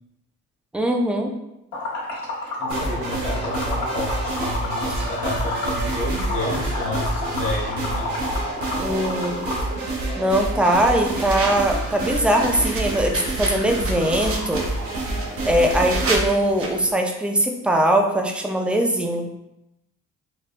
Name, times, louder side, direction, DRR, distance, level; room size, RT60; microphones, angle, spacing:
voice 1, 0.7-1.3 5.0-5.1 8.8-9.4 10.2-14.6 15.4-19.3, right 1 dB, 5° right, 2 dB, 0.3 m, -21 dB
Liquid, 1.7-9.7, left 2 dB, 60° left, 1.2 m, -30 dB
voice 2, 2.6-8.2, left 1 dB, 85° left, -8 dB, 1.3 m, -30 dB
sound 1, 2.7-16.3, right 2 dB, 75° right, 0.8 m, -28 dB
sound 2, 11.1-16.9, right 3 dB, 45° right, 0.6 m, -32 dB
4.2 x 2.1 x 2.2 m, 0.89 s
cardioid pair, 90°, 30 cm